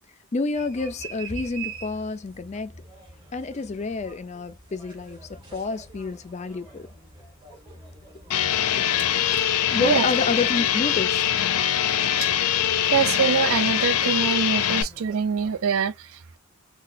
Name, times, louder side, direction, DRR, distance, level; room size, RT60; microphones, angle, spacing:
voice 1, 0.3-2.7 3.3-6.9 9.7-11.3, left 3 dB, 30° left, 0.3 m, -29 dB
sound 1, 0.5-15.6, right 3 dB, 20° right, 1.6 m, -45 dB
sound 2, 8.3-14.8, left 10 dB, 90° left, 0.5 m, -23 dB
voice 2, 12.8-16.4, right 6 dB, 75° right, 0.4 m, -25 dB
3.8 x 2.2 x 2.6 m
head